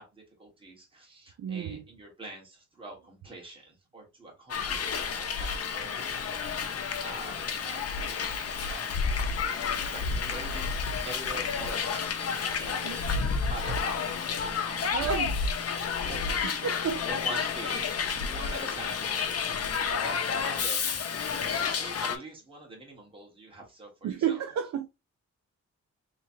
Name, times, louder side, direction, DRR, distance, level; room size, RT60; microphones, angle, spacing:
voice 1, 0.0-6.7 7.0-8.9 9.2-12.8 13.1-14.1 14.4-15.5 16.0-24.4, right 2 dB, 20° right, 1.3 m, -46 dB
voice 2, 1.4-1.8 12.8-13.0 14.9-15.3 16.4-17.1 18.2-18.3 24.0-24.9, right 8 dB, 75° right, 0.5 m, -31 dB
Hiss, 4.5-22.2, left 6 dB, 55° left, 0.7 m, -30 dB
3.6 x 3.1 x 2.7 m
wide cardioid pair, 160°, 29 cm